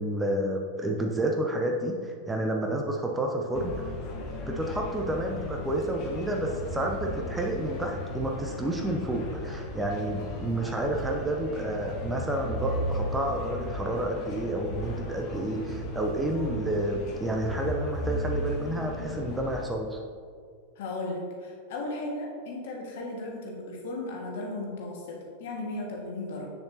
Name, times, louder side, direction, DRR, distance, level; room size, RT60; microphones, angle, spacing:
voice 1, 0.0-3.9 4.5-20.0, right 1 dB, 10° right, 1 dB, 0.7 m, -30 dB
sound 1, 3.5-19.6, left 1 dB, 35° left, 1.2 m, -36 dB
voice 2, 20.7-26.5, left 2 dB, 55° left, -1 dB, 1.6 m, -36 dB
8.1 x 6.8 x 2.8 m, 2.1 s
figure-of-eight pair, 90°, 0 cm